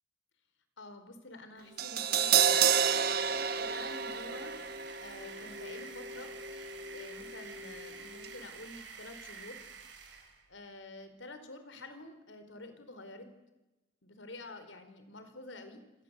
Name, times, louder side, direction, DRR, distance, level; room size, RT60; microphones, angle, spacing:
voice 1, 0.8-4.5 5.0-6.3 6.9-9.6 10.5-13.3 14.0-15.8, left 2 dB, 80° left, 9 dB, 4.5 m, -49 dB
Crash cymbal, 1.8-7.9 8.2-8.3, right 8 dB, 55° right, 1.4 m, -31 dB
sound 1, 2.7-10.4, right 6 dB, 70° right, 6.6 m, -49 dB
28.0 x 24.5 x 8.3 m, 1.0 s
head